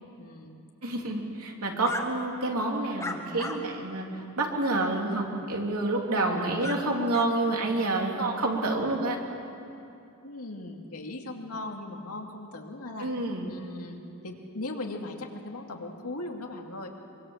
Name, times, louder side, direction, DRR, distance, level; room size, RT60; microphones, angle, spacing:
voice 1, 0.0-0.7 10.2-13.1 13.5-16.9, left 2 dB, 80° left, 1 dB, 2.6 m, -39 dB
voice 2, 0.8-4.1 4.4-9.2 13.0-13.5, right 2 dB, 80° right, 0 dB, 3.3 m, -28 dB
sound 1, 1.8-2.0 3.0-3.6 4.1-4.2 6.6-6.8 7.1-7.3, left 2 dB, 15° left, 1.6 m, -35 dB
24.0 x 23.5 x 7.4 m, 2.7 s
head